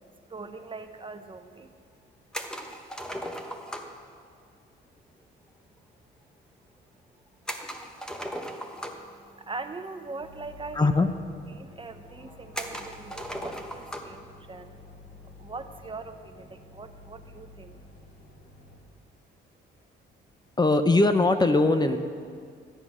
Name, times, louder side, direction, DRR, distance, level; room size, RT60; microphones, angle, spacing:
voice 1, 0.0-1.8 8.4-10.9 11.5-18.0, right 3 dB, 25° right, 7 dB, 0.8 m, -42 dB
sound 1, 2.3-4.0 7.5-9.2 10.2-10.3 10.6-10.7 11.5-11.6 12.5-14.2, equal, 5° left, 1.2 m, -37 dB
sound 2, 10.2-18.8, left 3 dB, 85° left, 3.4 m, -50 dB
voice 2, 10.7-11.1 20.6-22.0, left 2 dB, 20° left, 8 dB, 0.8 m, -21 dB
12.5 x 10.5 x 6.1 m, 2.1 s
cardioid pair, 90°, 20 cm